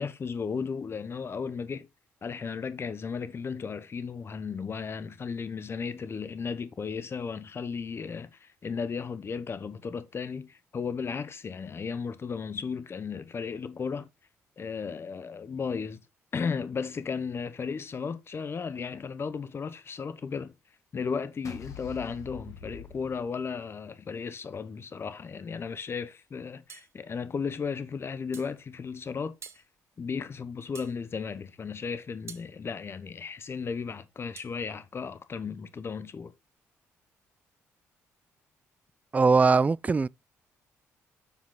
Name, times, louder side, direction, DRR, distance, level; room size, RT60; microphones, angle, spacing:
voice 1, 0.0-1.9 2.2-14.1 14.6-16.0 16.3-20.5 20.9-29.3 30.0-36.3, left 5 dB, 45° left, 1.1 m, -35 dB
sound 1, 21.4-23.8, left 4 dB, 65° left, 2.4 m, -45 dB
sound 2, 26.7-26.9 28.3-28.6 29.4-29.7 30.7-31.0 32.3-32.5 34.4-34.5, right 6 dB, 45° right, 1.8 m, -46 dB
voice 2, 39.1-40.1, right 4 dB, 25° right, 0.3 m, -21 dB
7.0 x 4.8 x 3.9 m
supercardioid pair, 65°, 6 cm